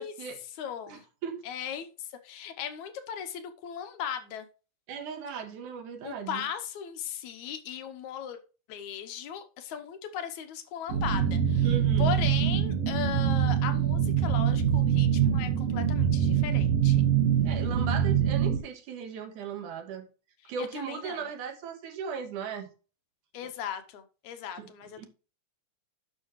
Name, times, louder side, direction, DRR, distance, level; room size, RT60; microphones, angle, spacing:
voice 1, 0.0-0.4 0.9-1.4 4.9-6.4 11.6-12.2 17.4-20.1 20.5-22.7 24.5-24.7 25.0-25.1, right 7 dB, 85° right, 2.9 m, -37 dB
voice 2, 0.6-1.0 1.5-4.5 6.0-8.4 8.7-11.7 12.0-17.1 20.6-21.2 23.3-25.1, left 9 dB, 75° left, 2.3 m, -37 dB
sound 1, 10.9-18.6, right 9 dB, 60° right, 2.7 m, -24 dB
10.0 x 6.5 x 3.1 m
omnidirectional pair, 3.5 m